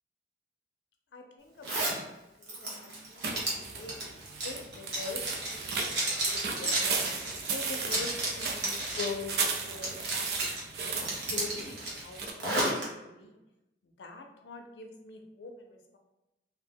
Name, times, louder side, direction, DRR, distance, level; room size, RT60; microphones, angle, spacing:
voice 1, 1.1-4.0 4.4-7.0 7.5-10.5 10.8-13.4 13.8-16.0, left 3 dB, 90° left, 4 dB, 0.5 m, -44 dB
Zipper (clothing), 1.6-2.0 2.4-9.2 9.5-10.6 11.0-12.8, right 2 dB, 80° right, 1.0 m, -33 dB
sound 1, 3.2-12.3, right 4 dB, 65° right, 0.4 m, -36 dB
2.8 x 2.1 x 3.4 m, 0.98 s
head